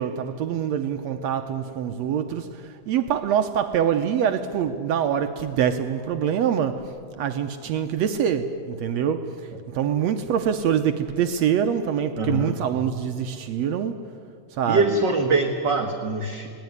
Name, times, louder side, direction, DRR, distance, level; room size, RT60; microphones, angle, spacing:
voice 1, 0.0-2.5 2.9-6.8 7.2-9.3 9.7-14.0 14.6-15.0, right 8 dB, 70° right, 1.8 m, -24 dB
voice 2, 12.1-12.6 14.7-16.5, right 3 dB, 55° right, 1.3 m, -23 dB
21.0 x 18.0 x 9.5 m
omnidirectional pair, 3.6 m